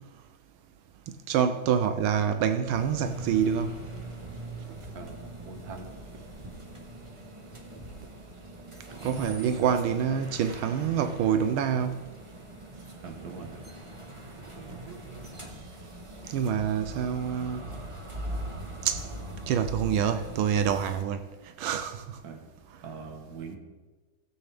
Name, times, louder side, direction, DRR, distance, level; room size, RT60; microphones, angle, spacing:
voice 1, 1.1-3.7 9.0-12.0 16.3-17.6 18.8-19.1 19.5-21.2 21.6-22.0, right 8 dB, 85° right, 1.4 m, -26 dB
sound 1, 2.7-21.0, right 1 dB, 25° right, 0.7 m, -42 dB
voice 2, 4.9-5.9 10.7-10.9 13.0-13.6 14.5-15.7 22.2-22.4 22.8-23.6, right 4 dB, 55° right, 1.6 m, -43 dB
16.0 x 7.8 x 3.4 m
omnidirectional pair, 2.2 m